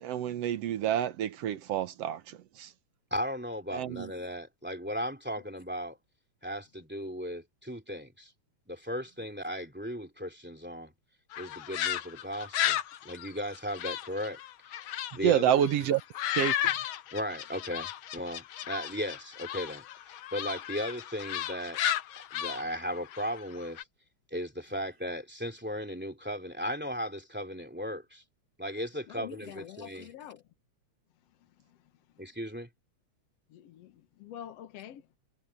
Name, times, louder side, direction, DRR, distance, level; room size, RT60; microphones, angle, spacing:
voice 1, 0.0-2.7 3.7-4.1 15.2-16.0 16.4-16.7, right 10 dB, 65° right, 1.9 m, -28 dB
voice 2, 3.1-6.0 6.4-8.3 8.7-10.9 11.4-12.8 13.0-14.4 14.7-14.8 15.1-15.6 17.1-19.8 20.3-21.8 22.3-23.8 24.3-28.2 28.6-30.1 32.2-32.7, equal, 5° right, 2.6 m, -36 dB
sound 1, 11.3-15.2 15.5-23.8, left 11 dB, 85° left, 1.1 m, -34 dB
voice 3, 29.1-30.4 31.4-31.8 32.2-32.3 33.5-35.2, left 10 dB, 65° left, 2.0 m, -47 dB
omnidirectional pair, 3.3 m